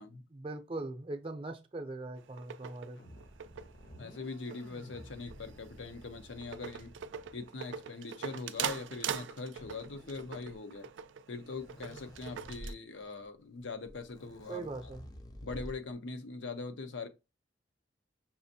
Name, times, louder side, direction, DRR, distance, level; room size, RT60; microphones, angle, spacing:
voice 1, 0.3-3.0 14.5-15.0, right 2 dB, 30° right, 0.5 m, -40 dB
sound 1, 2.2-12.7, right 8 dB, 85° right, 0.4 m, -43 dB
Wobbly synthetic effect, 2.9-7.8, equal, 65° left, 1.0 m, -53 dB
voice 2, 4.0-6.9 7.3-10.9 11.3-14.9 15.4-17.1, left 3 dB, 85° left, 0.7 m, -42 dB
sound 2, 9.6-10.7 11.4-12.7 13.6-13.7 13.9-15.9, equal, 20° left, 0.5 m, -49 dB
5.5 x 2.5 x 2.7 m
head